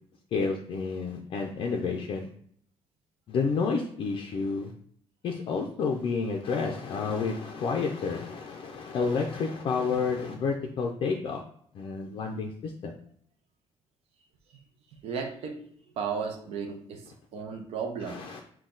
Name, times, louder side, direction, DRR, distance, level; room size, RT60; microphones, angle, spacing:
voice 1, 0.3-2.3 3.3-4.7 5.2-11.4 11.7-12.9 18.0-18.4, left 5 dB, 50° left, 1 dB, 0.5 m, -30 dB
voice 2, 15.0-15.7 16.0-18.2, right 6 dB, 60° right, 3 dB, 0.7 m, -34 dB
6.1 x 2.3 x 3.8 m, 0.64 s
cardioid pair, 160°, 11 cm